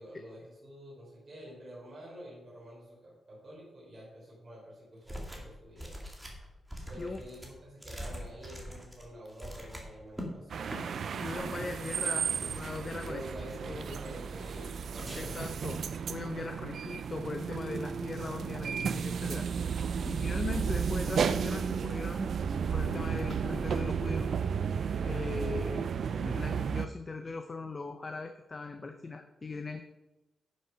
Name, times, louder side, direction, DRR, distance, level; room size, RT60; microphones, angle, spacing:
voice 1, 0.0-5.9 6.9-11.0 12.9-15.9 16.3-16.5, equal, 30° right, -6 dB, 3.5 m, -48 dB
sound 1, 5.1-5.5 5.8-10.3 10.6-10.8 11.2-11.6 12.0-12.8 13.1-13.7 14.3-14.7 14.9-15.6, equal, 5° right, 2.0 m, -44 dB
sound 2, 10.5-26.9, right 6 dB, 60° right, 0.4 m, -33 dB
voice 2, 11.1-13.2 13.7-13.9 15.1-15.8 16.1-19.5 20.0-22.3 22.7-24.3 25.0-29.8, left 3 dB, 30° left, 6 dB, 0.6 m, -39 dB
10.0 x 6.3 x 5.6 m, 1.0 s
wide cardioid pair, 140°, 0 cm